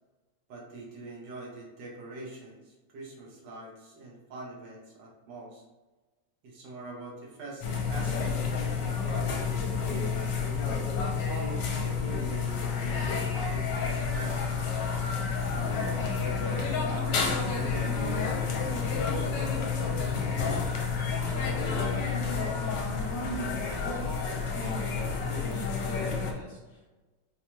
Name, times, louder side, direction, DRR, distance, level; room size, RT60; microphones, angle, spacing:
voice 1, 0.5-5.6 6.4-10.3 11.0-14.6 15.4-17.9, right 2 dB, 75° right, -2 dB, 1.5 m, -44 dB
sound 1, 7.6-26.3, left 5 dB, 75° left, 1.2 m, -30 dB
voice 2, 21.1-27.0, left 1 dB, 30° left, -6 dB, 1.0 m, -45 dB
4.1 x 2.2 x 3.0 m, 1.2 s
omnidirectional pair, 2.0 m